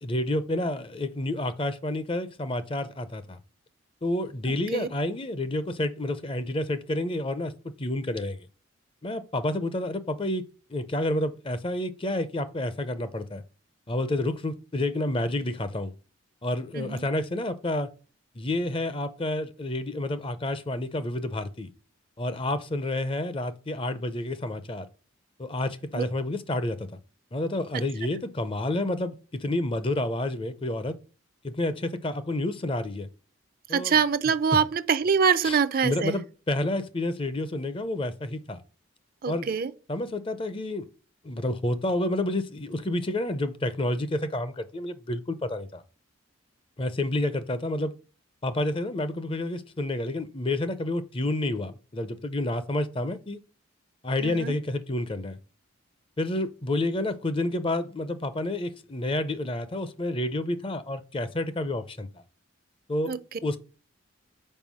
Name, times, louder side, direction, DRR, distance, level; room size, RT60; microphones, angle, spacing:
voice 1, 0.0-3.4 4.0-7.5 7.8-8.5 9.0-10.4 10.7-13.4 13.9-15.9 16.4-17.9 18.4-21.7 22.2-24.9 25.4-26.9 27.3-30.9 31.4-33.1 33.7-34.0 34.5-34.6 35.4-38.6 39.3-39.5 39.9-40.9 41.2-45.8 46.8-47.9 48.4-53.4 54.0-55.4 56.2-62.1 62.9-63.1 63.4-63.6, left 1 dB, 25° left, 0.5 m, -29 dB
voice 2, 4.5-4.9 16.7-17.0 25.9-26.0 33.7-36.2 39.2-39.7 54.2-54.5 63.1-63.2, right 6 dB, 45° right, 0.4 m, -24 dB
5.4 x 4.7 x 6.1 m
head